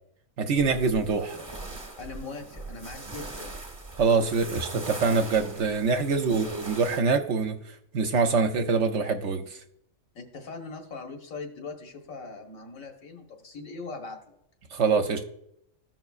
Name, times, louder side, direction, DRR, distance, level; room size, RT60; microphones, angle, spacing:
voice 1, 0.4-1.4 4.0-7.6 7.9-9.6 14.7-15.2, right 4 dB, 70° right, 5 dB, 0.9 m, -24 dB
sound 1, 0.6-7.0, right 2 dB, 25° right, 0.9 m, -40 dB
voice 2, 2.0-3.6 6.3-6.4 10.2-14.4, left 3 dB, 85° left, 2 dB, 1.7 m, -40 dB
14.5 x 5.8 x 2.4 m, 0.74 s
omnidirectional pair, 1.4 m